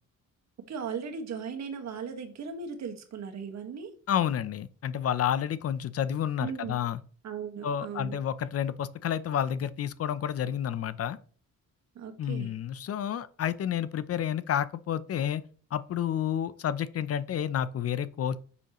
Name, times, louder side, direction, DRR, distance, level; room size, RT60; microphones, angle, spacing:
voice 1, 0.7-3.9 6.4-6.8 7.2-8.2 11.9-12.5, right 6 dB, 65° right, 1.6 m, -37 dB
voice 2, 4.1-7.0 7.6-11.2 12.2-15.4 15.7-18.4, left 9 dB, 55° left, 0.6 m, -30 dB
9.7 x 6.9 x 3.0 m
cardioid pair, 125°, 29 cm